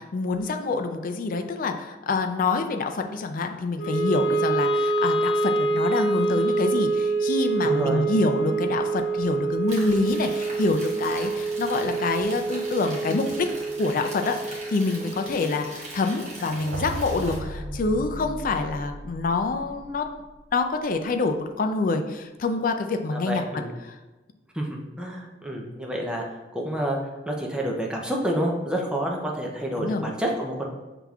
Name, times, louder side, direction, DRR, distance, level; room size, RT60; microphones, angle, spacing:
voice 1, 0.0-13.5 13.8-20.1 20.5-23.4 23.9-24.0 29.8-30.1, left 3 dB, 50° left, 6 dB, 0.4 m, -26 dB
Wind instrument woodwind instrument, 3.8-16.0, right 3 dB, 70° left, 0.9 m, -26 dB
voice 2, 7.6-8.1 23.1-23.7 24.5-26.2 26.5-27.0 27.3-30.7, right 1 dB, 5° right, -1 dB, 0.6 m, -28 dB
sound 1, 9.7-17.4, right 2 dB, 40° right, 1.1 m, -41 dB
sound 2, 16.4-20.4, right 1 dB, 80° right, 0.5 m, -36 dB
5.7 x 3.4 x 2.4 m, 1.2 s
head